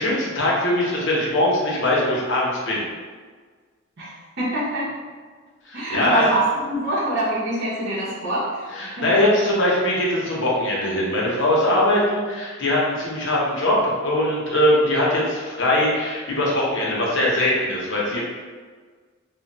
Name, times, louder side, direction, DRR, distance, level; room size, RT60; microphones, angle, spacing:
voice 1, 0.0-2.8 5.7-6.2 8.7-18.2, left 1 dB, 55° left, -5 dB, 0.7 m, -21 dB
voice 2, 4.0-4.9 5.7-9.1, right 1 dB, 55° right, -10 dB, 0.7 m, -25 dB
2.2 x 2.1 x 3.8 m, 1.5 s
head